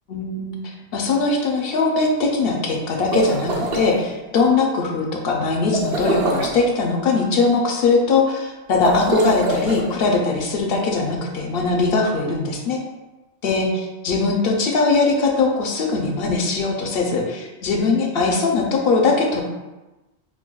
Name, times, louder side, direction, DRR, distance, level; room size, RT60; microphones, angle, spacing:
voice 1, 0.1-0.6 0.9-12.8 13.4-13.7 14.0-19.4, left 3 dB, 60° left, 1 dB, 0.7 m, -20 dB
sound 1, 2.9-3.9 5.7-6.6 8.7-9.8, right 2 dB, 65° right, 0.9 m, -24 dB
6.0 x 2.2 x 2.3 m, 1.1 s
omnidirectional pair, 1.2 m